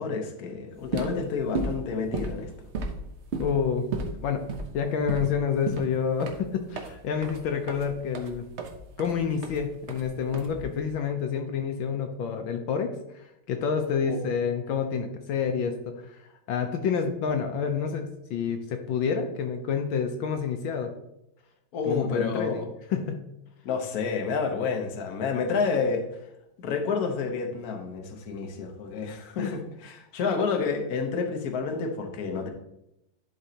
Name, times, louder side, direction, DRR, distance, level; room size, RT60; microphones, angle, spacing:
voice 1, 0.0-2.5 14.1-14.2 21.7-22.7 23.6-26.1 26.6-32.5, left 5 dB, 55° left, 3 dB, 1.3 m, -29 dB
sound 1, 0.7-10.9, right 3 dB, 55° right, 0.8 m, -35 dB
voice 2, 3.4-3.8 4.2-4.5 4.7-8.4 9.0-12.9 13.5-15.8 16.1-16.2 16.5-20.9 21.9-22.6 22.9-23.2 29.4-29.5, left 6 dB, 75° left, 5 dB, 1.5 m, -28 dB
11.0 x 5.1 x 2.8 m, 0.84 s
omnidirectional pair, 2.2 m